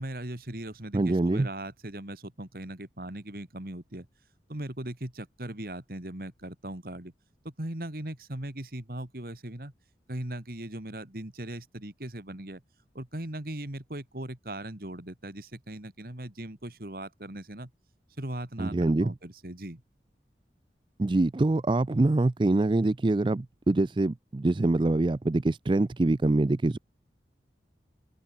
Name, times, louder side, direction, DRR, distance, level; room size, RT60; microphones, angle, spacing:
voice 1, 0.0-4.1 4.5-7.1 7.4-9.7 10.1-12.6 12.9-17.7 18.2-19.8, right 1 dB, 55° right, 2.5 m, -39 dB
voice 2, 0.9-1.5 18.6-19.1 21.0-26.8, right 2 dB, 25° right, 0.4 m, -24 dB
open air
head